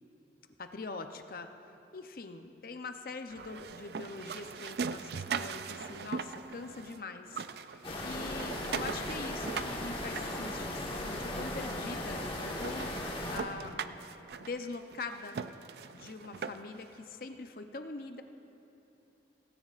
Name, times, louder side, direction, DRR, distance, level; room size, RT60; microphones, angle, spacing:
voice 1, 0.6-1.5 1.9-14.0 14.4-15.4 15.9-18.2, left 3 dB, 55° left, 7 dB, 0.6 m, -43 dB
sound 1, 3.3-7.0 7.3-11.0 11.7-11.8 12.2-12.3 12.6-16.9, right 5 dB, 65° right, 0.4 m, -40 dB
sound 2, 7.8-13.4, left 1 dB, 30° left, 1.4 m, -37 dB
17.5 x 16.5 x 2.5 m, 2.9 s
head